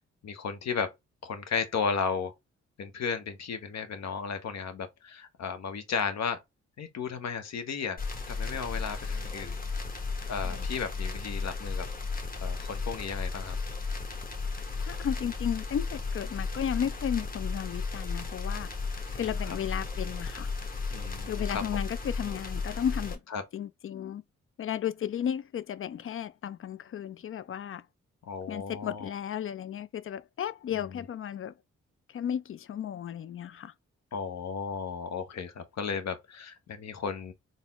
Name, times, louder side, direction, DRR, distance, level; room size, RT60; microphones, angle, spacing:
voice 1, 0.2-0.9 1.2-2.3 2.8-6.4 6.8-8.0 8.3-9.5 10.3-11.9 12.4-13.6 19.1-19.6 20.9-21.6 23.3-23.4 28.2-29.1 30.7-31.1 34.1-37.3, left 6 dB, 65° left, 0.9 m, -34 dB
sound 1, 8.0-23.2, left 4 dB, 30° left, 1.2 m, -34 dB
voice 2, 14.8-18.7 19.1-20.5 21.3-23.2 23.5-24.2 24.6-27.8 28.5-31.5 32.1-33.7, left 9 dB, 45° left, 0.4 m, -34 dB
4.0 x 2.1 x 3.5 m
supercardioid pair, 55°, 29 cm